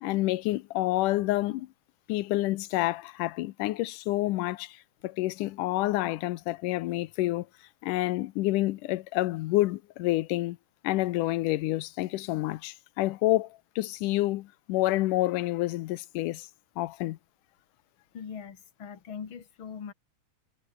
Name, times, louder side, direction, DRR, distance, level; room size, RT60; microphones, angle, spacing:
voice 1, 0.0-1.7 2.1-4.8 5.0-7.5 7.8-10.6 10.8-13.5 13.8-16.5 16.8-17.2, left 17 dB, 90° left, 2.3 m, -28 dB
voice 2, 18.1-19.9, left 7 dB, 40° left, 2.9 m, -41 dB
omnidirectional pair, 3.6 m